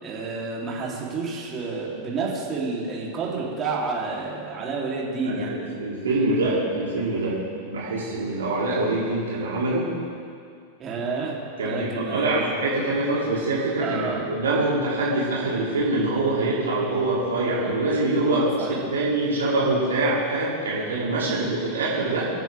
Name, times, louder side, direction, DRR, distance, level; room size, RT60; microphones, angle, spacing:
voice 1, 0.0-5.5 10.8-11.3 11.6-12.5 13.8-14.2 18.2-18.8 21.2-21.4, right 4 dB, 25° right, -4 dB, 3.8 m, -30 dB
voice 2, 5.2-7.4 7.6-9.9 11.6-18.4 18.9-22.3, right 2 dB, 65° right, -7 dB, 3.5 m, -24 dB
25.5 x 10.0 x 3.8 m, 2.3 s
figure-of-eight pair, 90°, 0 cm